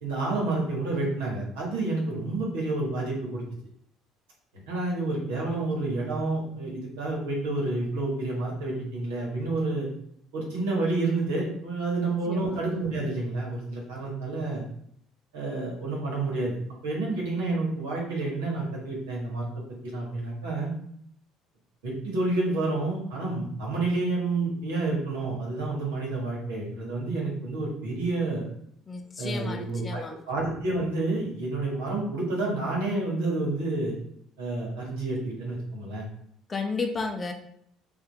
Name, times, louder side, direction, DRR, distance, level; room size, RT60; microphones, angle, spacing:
voice 1, 0.0-3.4 4.7-9.9 10.3-14.6 15.3-16.6 16.8-19.5 19.8-20.7 21.8-28.5 29.2-34.0 34.4-36.1, right 2 dB, 75° right, -3 dB, 1.8 m, -29 dB
voice 2, 12.3-12.6 28.9-30.2 36.5-37.3, left 4 dB, 30° left, 4 dB, 0.8 m, -33 dB
5.7 x 2.7 x 3.5 m, 0.68 s
hypercardioid pair, 60°, 0 cm